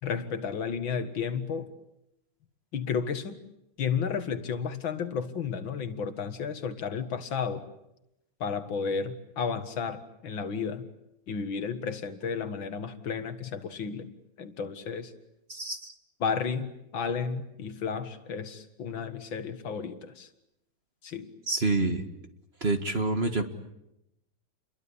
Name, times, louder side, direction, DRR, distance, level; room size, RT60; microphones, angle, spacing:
voice 1, 0.0-1.7 2.7-3.4 3.8-7.6 8.4-10.9 11.3-14.1 14.4-15.1 16.2-20.3 21.0-21.3, left 6 dB, 70° left, 9 dB, 2.4 m, -32 dB
voice 2, 15.5-15.9 21.5-22.0 22.6-23.4, right 3 dB, 30° right, 7 dB, 1.9 m, -27 dB
29.5 x 22.5 x 8.6 m, 0.86 s
omnidirectional pair, 2.2 m